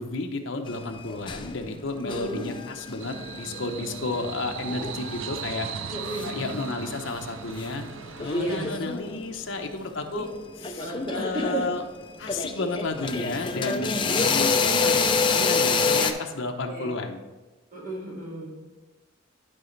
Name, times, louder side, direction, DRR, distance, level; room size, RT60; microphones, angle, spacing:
voice 1, 0.0-5.7 6.2-7.9 8.2-10.3 10.6-11.8 12.2-15.1 15.3-17.2, left 3 dB, 65° left, 4 dB, 0.8 m, -32 dB
sound 1, 0.7-7.7 8.0-9.4 10.2-10.3 10.6-16.1, left 4 dB, 25° left, 0.5 m, -27 dB
voice 2, 2.0-2.4 5.9-6.3 8.3-8.7 10.1-10.2 10.8-11.6 16.7-16.9 17.7-18.5, right 1 dB, 40° right, -4 dB, 2.1 m, -33 dB
sound 2, 3.0-8.8, right 7 dB, 75° right, 0.4 m, -37 dB
11.0 x 5.0 x 3.2 m, 1.1 s
head